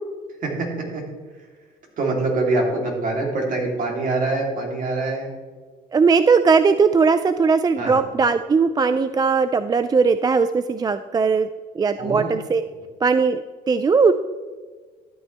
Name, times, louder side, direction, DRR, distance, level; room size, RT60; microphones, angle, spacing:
voice 1, 0.4-1.0 2.0-5.3 7.8-8.0 12.0-12.3, right 2 dB, 55° right, -1 dB, 3.3 m, -24 dB
voice 2, 5.9-11.5 11.7-12.6 13.0-14.1, right 5 dB, 25° right, 11 dB, 0.4 m, -19 dB
12.5 x 9.3 x 3.4 m, 1.4 s
cardioid pair, 110°, 17 cm